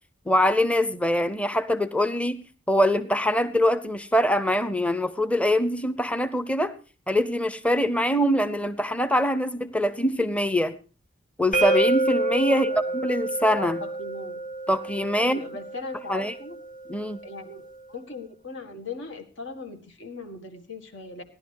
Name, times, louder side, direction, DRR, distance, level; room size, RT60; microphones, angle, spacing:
voice 1, 0.3-6.7 7.1-10.8 11.4-12.7 12.9-13.8 14.7-15.4 16.1-16.3 16.9-17.2, equal, 5° left, 12 dB, 0.8 m, -23 dB
sound 1, 11.5-17.3, right 2 dB, 45° left, 2.0 m, -29 dB
voice 2, 12.5-13.0 13.6-14.4 15.2-16.6 17.2-21.2, left 3 dB, 70° left, 5 dB, 2.0 m, -39 dB
17.0 x 11.5 x 4.7 m, 0.35 s
head